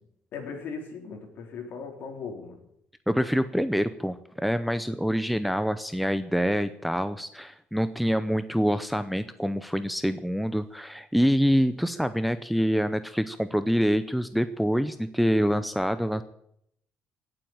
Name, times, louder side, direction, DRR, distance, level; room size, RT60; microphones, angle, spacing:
voice 1, 0.3-2.6, left 5 dB, 60° left, 4 dB, 3.9 m, -38 dB
voice 2, 3.1-16.2, equal, ahead, 12 dB, 0.6 m, -26 dB
17.5 x 7.8 x 8.8 m, 0.74 s
cardioid pair, 150°, 4 cm